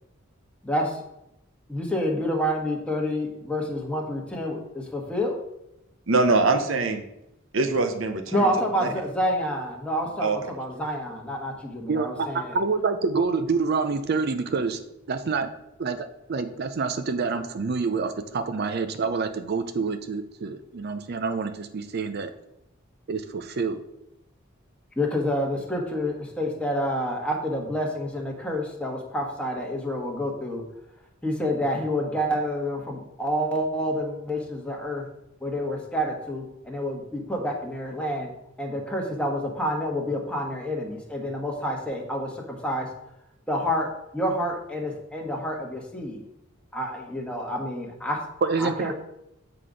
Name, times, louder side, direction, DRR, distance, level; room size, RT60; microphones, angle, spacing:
voice 1, 0.6-1.0 1.7-5.3 8.3-12.6 25.0-30.6 31.2-35.0 35.4-38.3 38.6-42.9 43.5-46.2 46.7-48.2 48.6-48.9, equal, 5° left, -1 dB, 1.3 m, -28 dB
voice 2, 6.1-7.0 7.5-8.5 8.8-8.9 10.2-10.4, right 3 dB, 75° right, 7 dB, 0.8 m, -23 dB
voice 3, 12.5-14.8 15.1-15.5 15.8-22.3 23.1-23.8 48.4-48.9, right 4 dB, 55° right, 9 dB, 0.5 m, -27 dB
7.7 x 3.9 x 4.9 m, 0.84 s
head